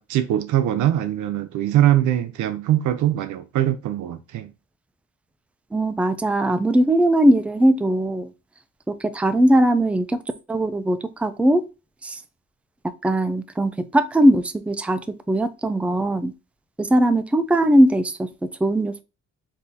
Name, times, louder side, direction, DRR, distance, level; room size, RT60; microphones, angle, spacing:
voice 1, 0.0-4.5, right 12 dB, 80° right, 0.6 m, -22 dB
voice 2, 5.7-8.3 8.9-10.2 10.5-11.6 12.0-12.2 13.0-15.0 15.3-16.3 16.8-19.0, right 1 dB, 5° right, 0.4 m, -19 dB
3.5 x 2.7 x 4.1 m
cardioid pair, 90°, 30 cm